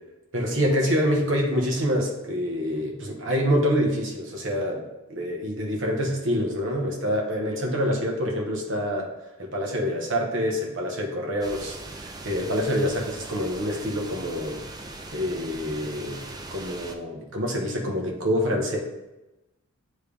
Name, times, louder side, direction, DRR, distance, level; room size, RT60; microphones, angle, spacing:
voice 1, 0.3-4.8 5.1-9.1 9.4-11.8 12.0-14.6 15.1-16.2 16.5-18.8, equal, 55° right, 0 dB, 1.3 m, -26 dB
sound 1, 11.4-17.0, right 2 dB, 15° right, 0.4 m, -40 dB
9.1 x 3.3 x 3.4 m, 1.0 s
head